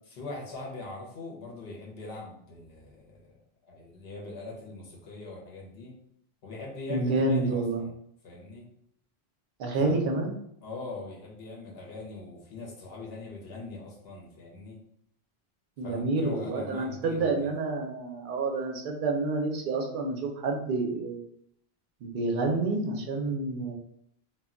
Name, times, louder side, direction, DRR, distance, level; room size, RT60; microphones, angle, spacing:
voice 1, 0.0-3.3 3.7-6.0 6.4-7.9 8.2-8.7 9.8-10.0 10.6-14.8 15.8-17.5, left 3 dB, 75° left, -2 dB, 1.0 m, -41 dB
voice 2, 6.9-7.8 9.6-10.3 15.8-21.2 22.0-23.7, right 3 dB, 60° right, 2 dB, 0.7 m, -28 dB
2.2 x 2.1 x 3.6 m, 0.71 s
omnidirectional pair, 1.0 m